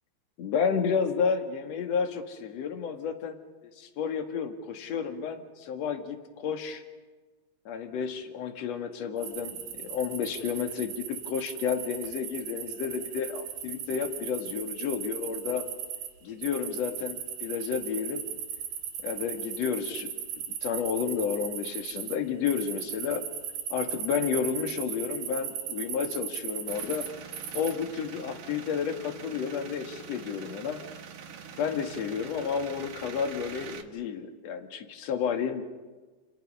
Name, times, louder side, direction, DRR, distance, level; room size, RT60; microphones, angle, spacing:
voice 1, 0.4-3.4 3.6-6.8 7.7-15.6 16.2-18.2 19.0-20.2 20.6-23.2 23.7-27.1 27.5-30.8 31.6-35.6, left 7 dB, 50° left, 6 dB, 2.5 m, -31 dB
sound 1, 9.2-16.1 16.4-22.2 22.5-27.7, right 9 dB, 80° right, 3.9 m, -37 dB
sound 2, 26.7-33.8, right 7 dB, 60° right, 3.0 m, -44 dB
30.0 x 29.5 x 5.6 m, 1.3 s
omnidirectional pair, 4.7 m